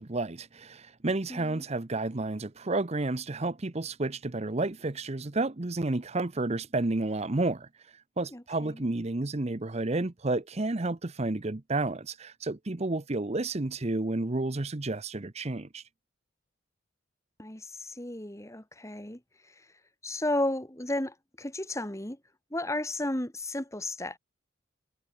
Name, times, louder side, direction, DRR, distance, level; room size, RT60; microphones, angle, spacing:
voice 1, 0.0-15.8, right 2 dB, 30° right, 0.8 m, -31 dB
voice 2, 1.3-1.6 8.3-8.9 17.4-19.7 20.0-22.2 22.5-24.2, left 1 dB, 15° left, 2.0 m, -34 dB
head